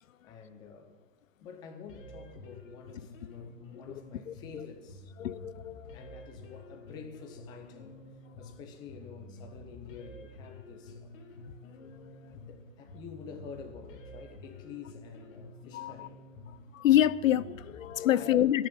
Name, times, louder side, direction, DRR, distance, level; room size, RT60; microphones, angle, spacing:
voice 1, 0.2-1.0 1.4-5.1 5.9-8.0 8.4-11.1 12.3-16.2 18.1-18.5, left 6 dB, 10° left, 0.6 m, -48 dB
Jazz Guitar Loop, 1.9-17.9, left 1 dB, 40° left, 2.3 m, -49 dB
voice 2, 5.2-6.0 12.0-12.1 15.7-16.1 16.7-18.7, left 12 dB, 70° left, 0.6 m, -26 dB
14.5 x 6.4 x 8.7 m
hypercardioid pair, 155°, 41 cm